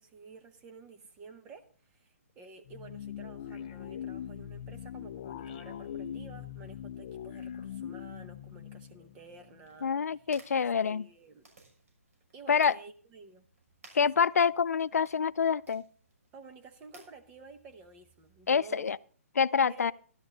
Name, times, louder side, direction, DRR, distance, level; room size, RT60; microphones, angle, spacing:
voice 1, 0.0-9.9 10.2-10.3 10.5-11.5 12.3-13.4 13.9-14.1 16.3-18.9 19.7-19.9, right 4 dB, 15° right, 0.8 m, -51 dB
sound 1, 2.6-9.8, left 9 dB, 30° left, 0.6 m, -42 dB
sound 2, 9.6-18.6, right 3 dB, 70° right, 6.1 m, -61 dB
voice 2, 9.8-11.1 12.5-12.8 13.9-15.8 18.5-19.0 19.4-19.9, left 6 dB, 90° left, 0.5 m, -26 dB
13.5 x 12.0 x 3.9 m
hypercardioid pair, 170°, 8 cm